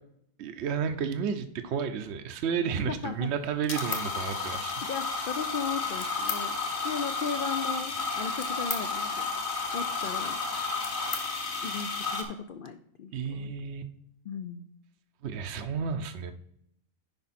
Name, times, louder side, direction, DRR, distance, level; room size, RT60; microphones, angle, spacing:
voice 1, 0.4-4.7 13.1-13.8 15.2-16.3, right 6 dB, 60° right, 7 dB, 0.8 m, -32 dB
voice 2, 2.8-3.3 4.9-9.3 9.7-10.4 11.6-13.5 14.3-14.6, left 6 dB, 80° left, 8 dB, 0.4 m, -36 dB
sound 1, 3.6-12.2, left 4 dB, 40° left, 1.2 m, -32 dB
10.5 x 4.9 x 4.1 m, 0.72 s
omnidirectional pair, 1.5 m